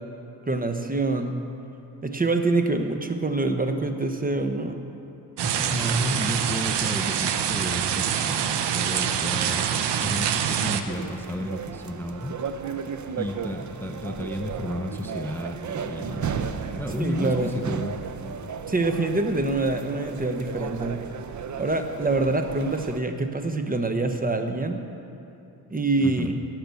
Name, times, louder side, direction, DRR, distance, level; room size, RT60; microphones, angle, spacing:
voice 1, 0.5-1.4 2.0-4.8 16.9-17.6 18.7-21.0 21.6-24.8 25.7-26.3, right 2 dB, 20° right, 6 dB, 0.9 m, -25 dB
voice 2, 5.4-9.7 10.0-12.4 13.2-17.9 26.0-26.3, left 1 dB, 5° left, 3 dB, 0.6 m, -32 dB
sound 1, 5.4-10.8, right 9 dB, 80° right, 0.8 m, -25 dB
sound 2, 10.9-23.0, right 6 dB, 45° right, 0.7 m, -34 dB
16.5 x 6.0 x 6.9 m, 2.9 s
cardioid pair, 80°, 40 cm